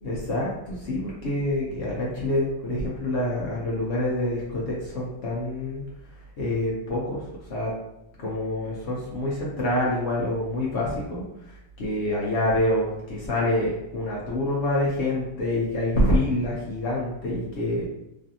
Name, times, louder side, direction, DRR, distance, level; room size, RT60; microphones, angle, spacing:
voice 1, 0.0-5.8 6.4-7.7 8.2-17.8, left 1 dB, 90° left, -4 dB, 0.6 m, -26 dB
3.2 x 2.5 x 2.7 m, 0.88 s
omnidirectional pair, 2.0 m